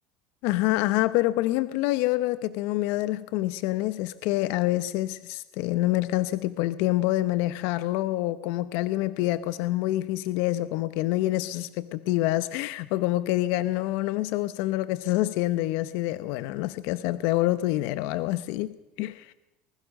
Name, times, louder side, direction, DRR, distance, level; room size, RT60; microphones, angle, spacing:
voice 1, 0.4-19.3, left 16 dB, 65° left, 15 dB, 0.8 m, -26 dB
24.5 x 20.5 x 6.4 m, 0.94 s
cardioid pair, 150°, 4 cm